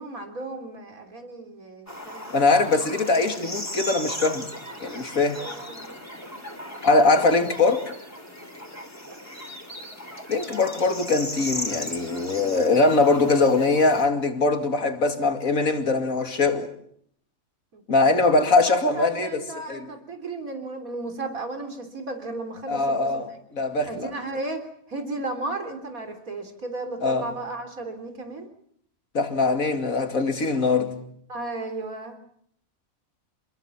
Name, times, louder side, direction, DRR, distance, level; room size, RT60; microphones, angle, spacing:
voice 1, 0.0-2.3 5.4-5.9 6.5-6.6 9.0-9.2 17.7-17.8 18.7-23.2 23.9-28.5 31.3-32.2, right 2 dB, 80° right, 4.0 m, -34 dB
sound 1, 1.9-14.0, equal, 10° left, 3.5 m, -37 dB
voice 2, 2.3-4.5 4.8-5.4 6.8-7.9 10.3-16.7 17.9-19.9 22.7-24.1 27.0-27.3 29.1-31.0, left 3 dB, 75° left, 2.8 m, -22 dB
28.0 x 21.5 x 7.3 m
omnidirectional pair, 1.5 m